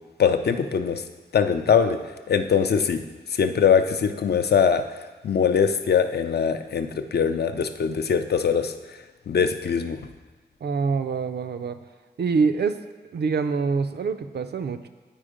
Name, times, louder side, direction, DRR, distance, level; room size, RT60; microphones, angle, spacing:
voice 1, 0.2-1.0 1.3-2.0 2.3-3.0 3.3-4.8 5.2-8.7 9.3-10.0, left 7 dB, 65° left, 8 dB, 0.5 m, -22 dB
voice 2, 10.6-11.8 12.2-12.8 13.1-14.9, right 5 dB, 65° right, 9 dB, 0.5 m, -25 dB
9.0 x 4.5 x 5.0 m, 1.3 s
wide cardioid pair, 145°, 18 cm